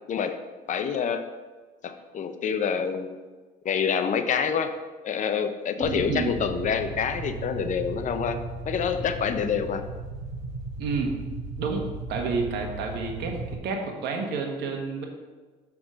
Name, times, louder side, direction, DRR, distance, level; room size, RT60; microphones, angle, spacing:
voice 1, 0.1-0.4 0.7-1.2 1.8-3.2 3.6-4.8 5.0-8.4 8.7-9.8, left 7 dB, 50° left, 9 dB, 0.7 m, -27 dB
sound 1, 5.8-13.6, right 2 dB, 45° right, 2.1 m, -36 dB
voice 2, 5.8-6.3 10.8-11.1 11.6-11.8 12.1-15.1, right 4 dB, 80° right, 2 dB, 1.5 m, -30 dB
6.3 x 6.0 x 5.0 m, 1.3 s
cardioid pair, 110°, 17 cm